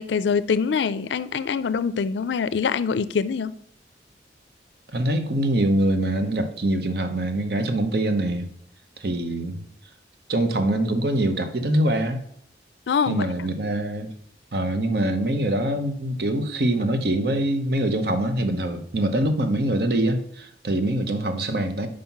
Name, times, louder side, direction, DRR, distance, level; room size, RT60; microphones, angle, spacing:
voice 1, 0.0-3.5 12.9-13.3, left 6 dB, 75° left, 15 dB, 0.4 m, -24 dB
voice 2, 4.9-8.5 9.0-9.6 10.3-12.2 13.1-14.1 14.5-21.9, right 1 dB, 60° right, 8 dB, 0.8 m, -24 dB
5.6 x 5.1 x 5.8 m, 0.65 s
head